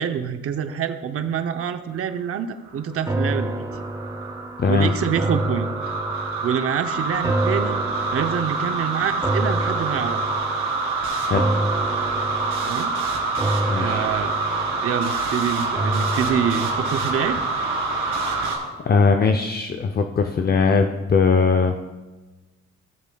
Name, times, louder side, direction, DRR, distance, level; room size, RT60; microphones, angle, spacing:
voice 1, 0.0-3.7 4.7-5.7 6.4-7.8 8.1-10.2 12.6-12.9 13.8-14.4 14.8-17.4, right 8 dB, 50° right, 8 dB, 0.7 m, -26 dB
sound 1, 2.7-18.6, right 3 dB, 90° right, 2.6 m, -26 dB
sound 2, 3.1-18.4 18.7-18.8, right 1 dB, 10° right, 0.7 m, -29 dB
voice 2, 4.6-4.9 11.3-11.5 13.7-14.0 18.8-21.7, left 4 dB, 35° left, 6 dB, 0.6 m, -19 dB
15.0 x 7.1 x 2.3 m, 1.2 s
cardioid pair, 90°, 30 cm